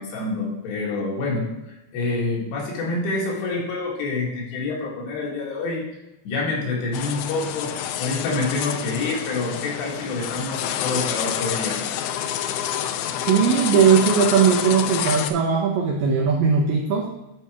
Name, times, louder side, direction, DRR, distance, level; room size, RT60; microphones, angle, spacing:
voice 1, 0.0-1.5 1.9-5.9 6.3-7.7 8.0-11.8, left 3 dB, 70° left, -3 dB, 3.8 m, -27 dB
sound 1, 6.9-15.3, left 10 dB, 90° left, 2.2 m, -28 dB
voice 2, 13.2-17.1, right 6 dB, 85° right, 1 dB, 1.9 m, -19 dB
12.0 x 4.8 x 3.5 m, 0.96 s
omnidirectional pair, 5.1 m